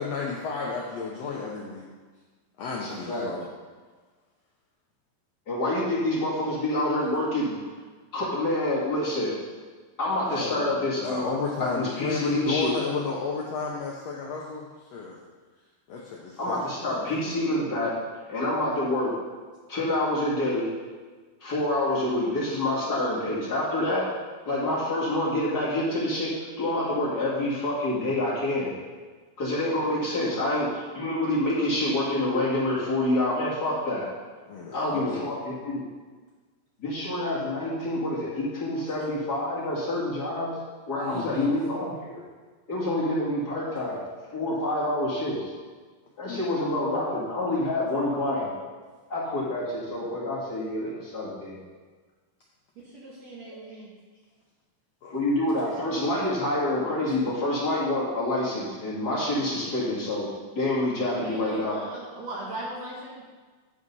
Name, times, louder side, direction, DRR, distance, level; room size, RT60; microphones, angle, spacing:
voice 1, 0.0-1.8 2.6-3.4 10.3-14.7 14.9-15.2 15.9-17.2 30.2-30.4 34.5-35.3 41.0-41.5 46.2-46.4 53.7-53.8 55.0-55.2, left 4 dB, 90° left, -3 dB, 1.4 m, -32 dB
voice 2, 2.8-3.3 5.5-7.6 8.1-9.3 10.0-12.7 16.4-18.0 18.3-19.1 19.7-20.7 21.4-24.1 24.4-28.7 29.4-34.1 34.7-35.8 36.8-40.5 40.9-42.2 42.7-44.0 44.3-45.4 46.2-48.5 49.1-51.6 55.1-60.3 60.5-61.8, left 1 dB, 35° left, -8 dB, 1.8 m, -27 dB
voice 3, 52.8-53.9 61.1-63.2, right 1 dB, 60° right, -4 dB, 1.9 m, -39 dB
9.9 x 5.2 x 5.4 m, 1.4 s
omnidirectional pair, 4.2 m